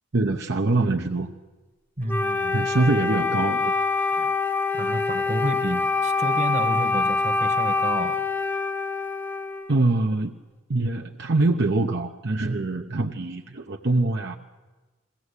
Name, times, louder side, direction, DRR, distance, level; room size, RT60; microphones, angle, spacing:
voice 1, 0.1-1.3 2.5-3.7 4.2-4.3 9.7-10.4 10.7-14.4, right 2 dB, 55° right, 1 dB, 0.8 m, -24 dB
voice 2, 2.0-2.6 4.7-8.2, right 1 dB, 35° right, 6 dB, 1.2 m, -30 dB
Wind instrument woodwind instrument, 2.1-9.8, left 4 dB, 10° left, 0.6 m, -25 dB
21.5 x 16.0 x 8.2 m, 1.3 s
head